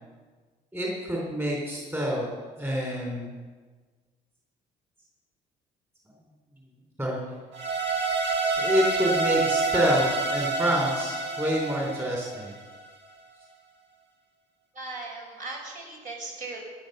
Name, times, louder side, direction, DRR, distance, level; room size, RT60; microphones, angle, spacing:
voice 1, 0.7-2.3 2.6-3.3 7.0-7.2 8.6-12.5, equal, 15° right, -2 dB, 3.8 m, -27 dB
sound 1, 7.5-12.8, right 4 dB, 75° right, 3.0 m, -27 dB
voice 2, 14.7-16.6, right 3 dB, 50° right, -1 dB, 5.4 m, -38 dB
14.0 x 9.9 x 6.8 m, 1.4 s
cardioid pair, 110°, 17 cm